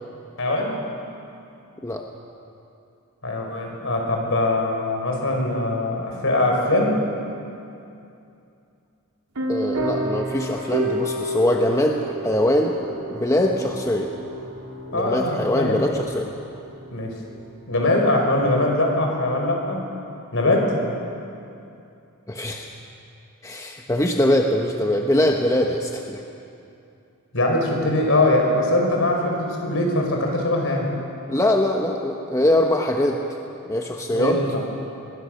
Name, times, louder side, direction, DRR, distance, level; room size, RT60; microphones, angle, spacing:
voice 1, 0.4-0.8 3.2-7.0 14.9-15.9 16.9-17.1 17.7-19.9 20.3-20.7 27.3-30.9 34.1-34.4, left 2 dB, 60° left, 1 dB, 5.3 m, -22 dB
sound 1, 9.4-17.5, right 1 dB, 90° right, 3.0 m, -31 dB
voice 2, 9.5-12.7 13.1-14.1 14.9-16.3 22.3-22.7 23.4-26.2 31.3-33.2 33.7-34.4, left 1 dB, 15° left, 2 dB, 1.1 m, -22 dB
24.5 x 22.0 x 6.6 m, 2.7 s
head